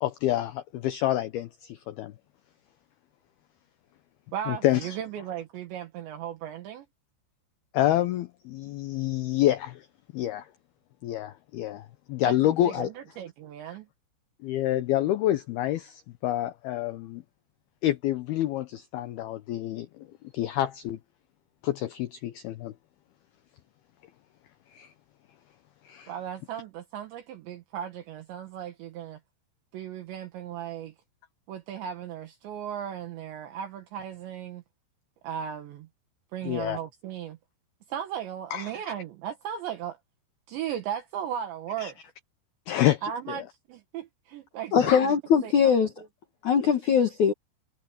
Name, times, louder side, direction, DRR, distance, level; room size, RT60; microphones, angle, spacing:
voice 1, 0.0-2.1 4.5-5.0 7.7-9.9 10.1-10.5 11.0-12.9 14.4-17.2 17.8-20.1 20.3-21.0 21.6-22.7 24.7-24.9 25.8-26.1 36.4-36.8 38.5-38.8 41.8-41.9 42.7-43.5 44.8-45.1, left 13 dB, 85° left, 2.2 m, -28 dB
voice 2, 4.3-6.9 12.2-12.4 12.6-13.9 26.1-29.2 29.7-30.9 31.5-34.6 35.2-35.9 36.3-37.4 37.9-40.0 40.5-42.0 43.0-45.1 45.4-45.7, right 9 dB, 70° right, 3.6 m, -36 dB
voice 3, 44.7-45.9 46.4-47.3, left 7 dB, 70° left, 1.9 m, -21 dB
omnidirectional pair, 5.6 m